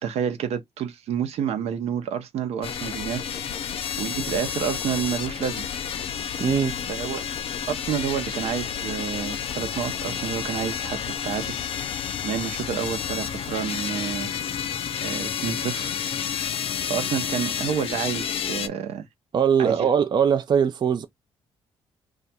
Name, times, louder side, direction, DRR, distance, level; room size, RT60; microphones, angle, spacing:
voice 1, 0.0-5.6 6.9-7.3 7.7-12.0 12.2-14.3 15.0-15.9 16.9-19.1 19.6-19.9, right 8 dB, 75° right, 0.8 m, -29 dB
sound 1, 2.6-18.7, left 8 dB, 60° left, 0.5 m, -30 dB
voice 2, 6.4-6.7 19.3-21.1, right 7 dB, 40° right, 0.4 m, -21 dB
2.5 x 2.4 x 4.1 m
cardioid pair, 80°, 11 cm